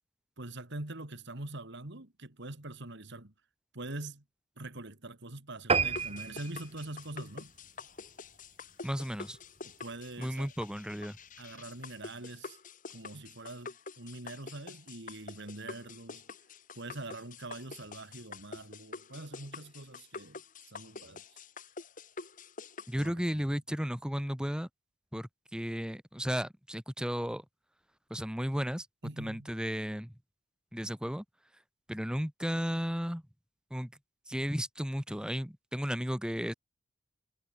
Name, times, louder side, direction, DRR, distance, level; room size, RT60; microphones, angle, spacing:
voice 1, 0.4-3.3 3.7-4.2 4.6-7.5 9.6-10.5 11.4-12.6 12.9-16.2 16.7-20.4 20.7-21.4 22.9-23.5 29.0-29.5, right 2 dB, 55° right, 2.6 m, -44 dB
sound 1, 5.7-8.4 8.9-9.1 9.6-9.7 10.0-10.1 10.3-10.4, right 4 dB, 30° right, 1.8 m, -32 dB
sound 2, 5.9-23.1, left 4 dB, 40° left, 1.5 m, -47 dB
voice 2, 8.8-9.4 10.2-11.2 22.9-24.7 25.1-27.4 28.1-28.9 29.2-30.1 30.7-31.2 31.9-33.2 33.7-33.9 34.3-36.5, equal, 5° right, 2.3 m, -34 dB
head